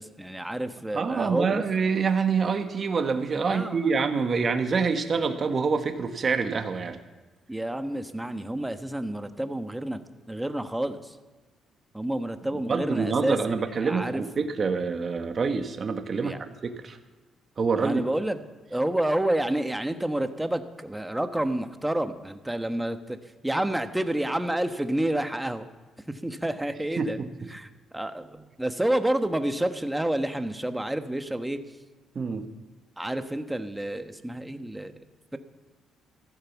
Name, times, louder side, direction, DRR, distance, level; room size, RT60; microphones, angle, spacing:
voice 1, 0.0-1.6 3.4-3.9 7.5-10.0 10.3-11.1 11.9-13.4 13.8-14.2 16.2-16.4 17.8-18.4 18.7-23.2 23.4-25.7 26.1-27.2 27.5-31.6 33.0-35.0 35.3-35.4, right 1 dB, 10° right, 8 dB, 1.2 m, -29 dB
voice 2, 0.9-7.0 12.7-17.0 17.6-18.0 27.0-27.5 32.1-32.4, right 5 dB, 45° right, 6 dB, 1.4 m, -26 dB
15.0 x 11.5 x 7.3 m, 1.3 s
cardioid pair, 90°, 0 cm